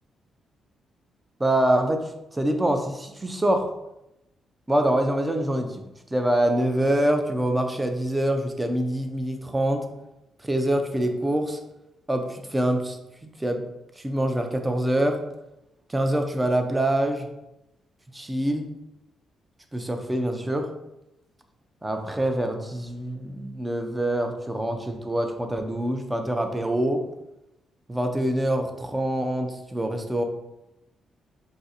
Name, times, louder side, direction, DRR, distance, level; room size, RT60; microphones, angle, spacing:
voice 1, 1.4-3.7 4.7-5.8 6.1-9.9 10.4-11.6 12.1-13.0 13.4-13.6 14.0-15.2 15.9-17.3 18.1-18.7 19.7-20.7 21.8-27.0 27.9-30.2, right 1 dB, 10° right, 5 dB, 0.3 m, -25 dB
2.5 x 2.4 x 4.0 m, 0.89 s
cardioid pair, 150°, 0 cm